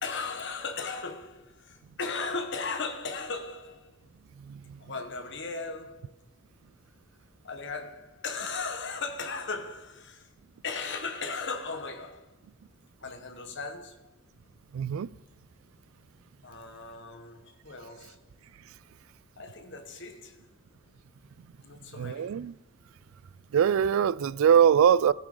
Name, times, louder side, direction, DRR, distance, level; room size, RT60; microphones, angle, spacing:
voice 1, 0.0-3.9 4.8-6.2 7.4-10.3 10.6-12.3 13.0-14.1 16.4-18.2 19.4-20.4 21.6-22.4 25.0-25.1, left 4 dB, 60° left, 1.4 m, -37 dB
voice 2, 4.5-4.8 14.7-15.1 22.0-22.5 23.5-25.1, right 8 dB, 75° right, 0.3 m, -22 dB
13.0 x 9.8 x 3.8 m
head